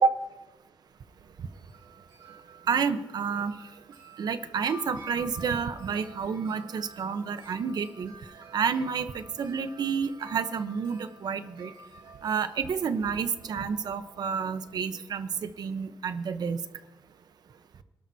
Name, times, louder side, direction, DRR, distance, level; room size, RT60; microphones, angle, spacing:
Wind chime, 1.5-14.8, right 1 dB, 80° right, 4.7 m, -50 dB
voice 1, 2.7-3.5 4.2-8.1 8.5-11.7 12.2-16.6, right 6 dB, 55° right, 11 dB, 0.9 m, -29 dB
26.0 x 12.5 x 2.8 m, 1.1 s
cardioid pair, 125°, 8 cm